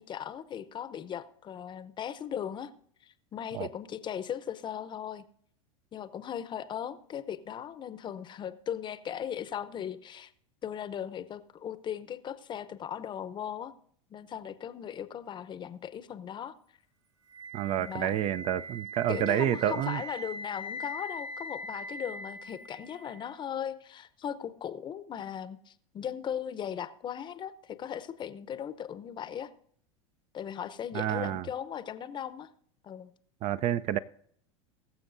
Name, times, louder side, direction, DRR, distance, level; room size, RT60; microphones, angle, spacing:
voice 1, 0.0-2.7 3.0-5.2 5.9-10.3 10.6-13.7 14.1-16.5 17.8-18.2 19.1-29.5 30.3-32.5 32.8-33.1, left 9 dB, 30° left, 0.7 m, -38 dB
Wind instrument woodwind instrument, 17.3-23.3, equal, 80° right, 3.8 m, -41 dB
voice 2, 17.5-20.0 30.9-31.5 33.4-34.0, right 11 dB, 40° right, 0.4 m, -29 dB
21.0 x 7.1 x 2.6 m
hypercardioid pair, 95°, 16 cm